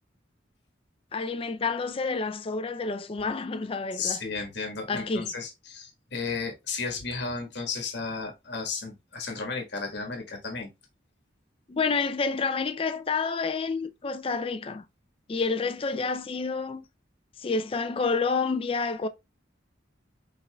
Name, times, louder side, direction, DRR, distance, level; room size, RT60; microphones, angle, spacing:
voice 1, 1.1-4.2 4.9-5.3 11.7-14.9 15.3-16.8 17.4-19.1, left 4 dB, 30° left, 0.4 m, -29 dB
voice 2, 3.9-10.7, left 4 dB, 60° left, 1.5 m, -33 dB
5.5 x 3.7 x 2.3 m
head